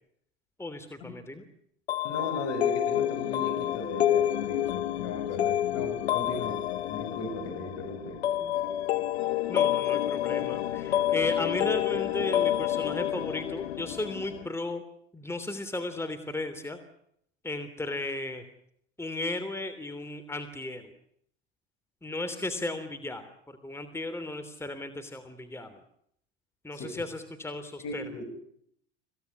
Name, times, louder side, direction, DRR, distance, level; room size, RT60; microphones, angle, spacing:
voice 1, 0.6-1.4 8.4-8.5 9.5-14.8 15.1-16.8 17.4-18.4 19.0-20.9 22.0-25.8 26.6-28.0, left 2 dB, 10° left, 8 dB, 3.1 m, -35 dB
sound 1, 1.9-14.5, left 12 dB, 80° left, 1.1 m, -28 dB
voice 2, 2.0-8.3 26.7-26.9 27.8-28.2, left 2 dB, 50° left, 9 dB, 7.8 m, -36 dB
27.0 x 17.5 x 9.7 m, 0.71 s
hypercardioid pair, 80°, 32 cm